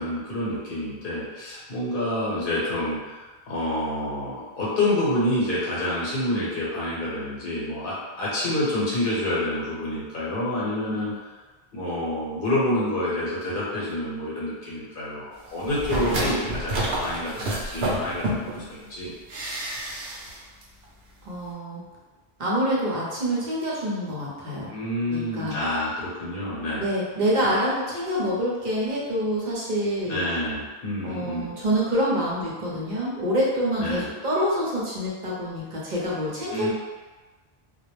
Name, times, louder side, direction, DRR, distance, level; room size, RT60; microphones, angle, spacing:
voice 1, 0.0-3.2 3.5-11.1 11.7-19.1 24.7-26.9 27.4-27.5 30.1-31.5 33.8-34.1 36.5-36.7, left 1 dB, 60° left, -7 dB, 1.0 m, -28 dB
sound 1, 15.6-18.6 19.3-20.3 20.6-20.7, right 1 dB, 80° right, 0.8 m, -28 dB
voice 2, 21.2-21.8 22.4-24.7 25.1-25.6 26.8-30.2 31.0-36.7, equal, 50° right, -5 dB, 0.7 m, -26 dB
2.3 x 2.0 x 3.0 m, 1.3 s
omnidirectional pair, 1.0 m